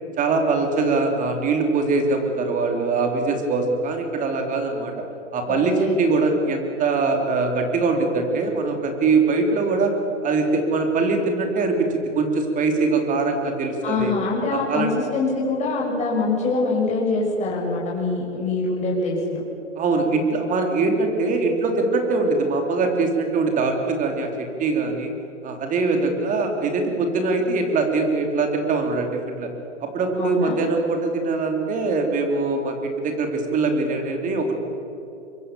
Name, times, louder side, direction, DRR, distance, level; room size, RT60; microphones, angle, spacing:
voice 1, 0.2-4.9 5.3-9.9 10.2-14.1 14.5-14.9 19.8-24.3 24.6-25.1 25.4-29.5 29.8-34.6, right 3 dB, 20° right, 4 dB, 3.6 m, -22 dB
voice 2, 5.5-6.0 13.8-19.4 30.1-30.6, left 3 dB, 20° left, -4 dB, 6.3 m, -24 dB
25.0 x 23.5 x 7.0 m, 3.0 s
hypercardioid pair, 120°, 35 cm